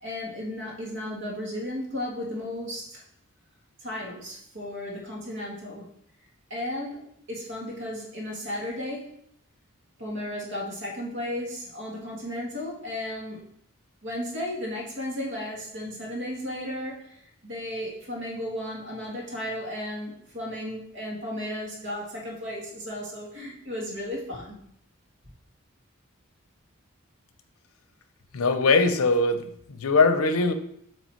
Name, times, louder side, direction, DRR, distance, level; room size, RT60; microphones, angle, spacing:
voice 1, 0.0-3.0 3.8-5.9 6.5-9.2 10.0-13.4 14.0-24.6, left 1 dB, 55° right, -2 dB, 1.7 m, -34 dB
voice 2, 28.3-30.5, left 3 dB, 80° left, 9 dB, 0.7 m, -21 dB
7.3 x 3.2 x 4.4 m, 0.69 s
head